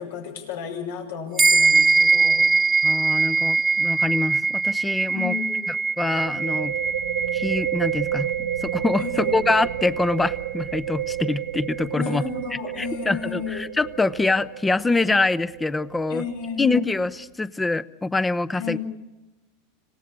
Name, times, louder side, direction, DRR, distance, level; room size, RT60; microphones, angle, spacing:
voice 1, 0.0-2.5 5.1-5.6 9.0-9.4 11.9-13.6 16.1-16.7 18.6-18.8, left 7 dB, 80° left, 3 dB, 6.1 m, -32 dB
sound 1, 1.4-11.1, right 4 dB, 10° right, 1.3 m, -23 dB
voice 2, 2.8-5.3 5.7-6.8 7.3-12.2 12.8-16.2 16.6-18.8, left 3 dB, 10° left, 15 dB, 0.8 m, -25 dB
sound 2, 2.8-3.1 3.4-3.5 6.0-17.3, right 12 dB, 85° right, 0.9 m, -31 dB
26.5 x 17.0 x 8.7 m, 1.0 s
supercardioid pair, 120°, 0 cm